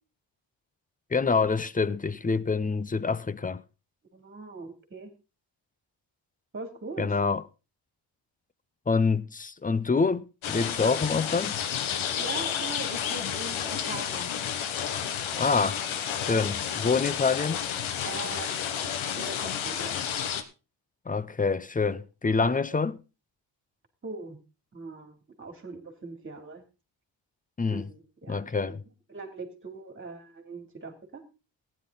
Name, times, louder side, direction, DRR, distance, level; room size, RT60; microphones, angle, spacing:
voice 1, 1.1-3.6 7.0-7.4 8.9-11.6 15.4-15.8 16.3-17.6 21.1-23.0 27.6-27.9 28.3-28.8, left 4 dB, 20° left, 0.6 m, -26 dB
voice 2, 4.1-5.1 6.5-7.2 12.2-14.3 16.2-16.4 16.8-16.9 18.0-19.9 22.4-22.8 24.0-24.4 24.7-26.6 27.7-28.8 29.1-31.2, right 3 dB, 25° right, 2.9 m, -41 dB
sound 1, 10.4-20.4, left 8 dB, 90° left, 1.4 m, -31 dB
15.0 x 10.0 x 3.9 m
cardioid pair, 110°, 46 cm